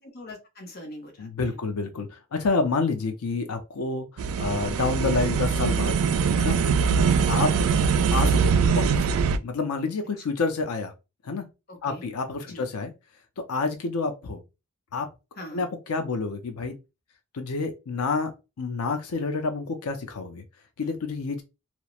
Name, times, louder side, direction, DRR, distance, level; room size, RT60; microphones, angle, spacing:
voice 1, 0.0-1.6 6.8-7.2 10.2-10.3 11.7-12.0 12.4-12.6 15.4-15.7, left 1 dB, 45° left, 0.7 m, -42 dB
voice 2, 1.2-5.9 6.4-6.6 7.3-7.5 8.1-9.0 9.4-10.9 11.2-11.4 11.8-12.9 13.5-14.4 14.9-15.1 15.5-16.7 17.3-18.3 18.6-20.4 20.8-21.4, left 4 dB, 90° left, 0.5 m, -28 dB
sound 1, 4.2-9.4, right 6 dB, 75° right, 0.3 m, -22 dB
2.9 x 2.0 x 2.3 m
head